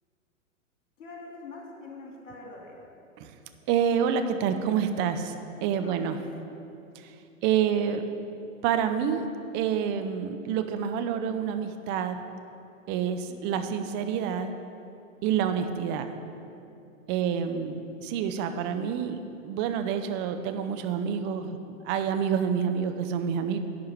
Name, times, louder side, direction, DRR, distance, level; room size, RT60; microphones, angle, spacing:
voice 1, 1.0-2.9 5.7-6.5 13.3-13.6 17.2-17.6, left 3 dB, 65° left, -1 dB, 2.9 m, -45 dB
voice 2, 3.7-5.3 5.6-6.2 7.4-8.0 8.6-9.3 9.5-12.2 12.9-14.5 15.2-16.1 17.1-19.2 19.4-21.6 21.9-23.6, right 8 dB, 25° right, 8 dB, 0.6 m, -27 dB
11.0 x 4.7 x 8.3 m, 2.7 s
figure-of-eight pair, 110°, 40 cm